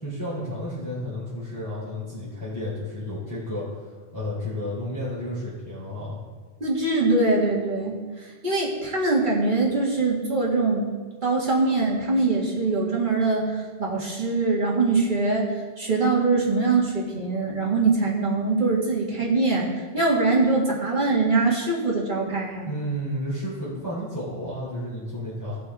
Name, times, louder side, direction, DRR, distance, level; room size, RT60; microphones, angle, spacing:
voice 1, 0.0-3.8 4.1-6.2 22.6-25.6, equal, 20° left, -11 dB, 3.4 m, -32 dB
voice 2, 6.6-8.0 8.4-10.8 11.2-15.5 15.8-22.7, right 3 dB, 45° right, -5 dB, 2.2 m, -23 dB
17.5 x 5.9 x 3.7 m, 1.4 s
omnidirectional pair, 1.1 m